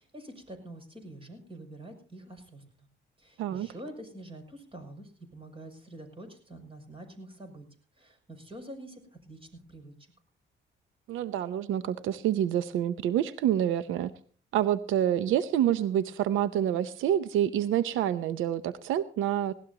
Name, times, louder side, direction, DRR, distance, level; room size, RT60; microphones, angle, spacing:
voice 1, 0.0-2.9 3.2-7.7 7.9-9.9, right 1 dB, 25° right, 6 dB, 6.5 m, -46 dB
voice 2, 11.1-14.1 14.5-19.5, right 11 dB, 85° right, 14 dB, 0.7 m, -27 dB
19.0 x 17.5 x 2.9 m, 0.42 s
cardioid pair, 90°, 20 cm